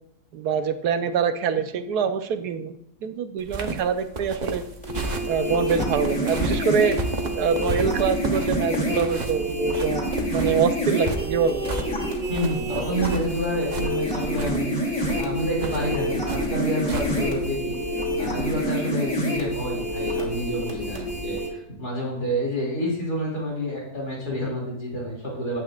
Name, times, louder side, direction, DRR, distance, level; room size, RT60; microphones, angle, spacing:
voice 1, 0.3-2.7 3.0-4.6 5.3-7.0 7.4-11.6, right 7 dB, 70° right, 9 dB, 1.2 m, -25 dB
sound 1, 3.4-17.5, right 3 dB, 40° right, 0.7 m, -33 dB
sound 2, 4.8-21.5, equal, 5° left, 2.8 m, -27 dB
voice 2, 12.3-17.8 18.2-25.6, equal, 65° left, -4 dB, 3.2 m, -29 dB
12.0 x 8.5 x 2.4 m, 0.76 s
omnidirectional pair, 1.8 m